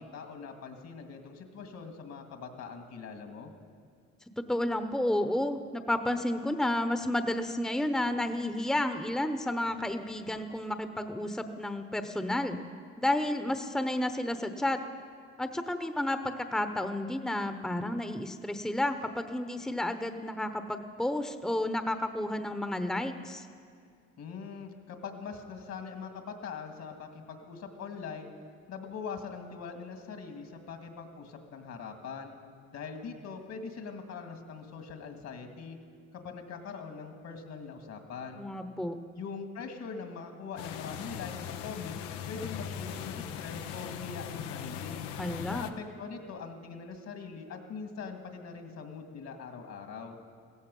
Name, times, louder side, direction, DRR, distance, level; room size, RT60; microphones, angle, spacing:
voice 1, 0.0-3.5 24.2-28.3 28.7-32.4 32.7-35.8 36.1-38.4 39.2-42.0 42.3-45.0 45.5-50.2, left 5 dB, 65° left, 5 dB, 2.2 m, -42 dB
voice 2, 4.4-12.6 13.0-14.8 15.4-16.2 16.5-23.5 38.4-39.0 45.2-45.7, left 1 dB, ahead, 8 dB, 0.9 m, -31 dB
sound 1, 40.6-45.7, left 8 dB, 90° left, 0.8 m, -39 dB
16.0 x 15.0 x 5.5 m, 2.2 s
supercardioid pair, 65°, 30 cm